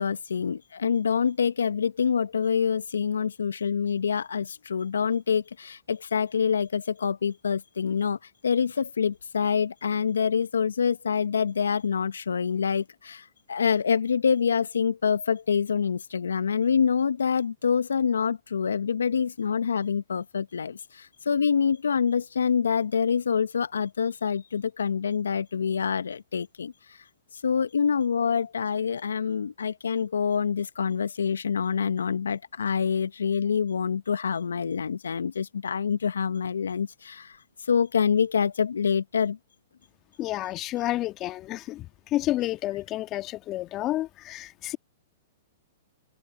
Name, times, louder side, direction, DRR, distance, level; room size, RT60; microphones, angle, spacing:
voice 1, 0.0-27.0 27.4-39.4, left 6 dB, 80° left, 1.2 m, -26 dB
voice 2, 40.2-41.9 42.1-44.8, left 15 dB, 35° left, 1.6 m, -30 dB
hypercardioid pair, 110°, 0 cm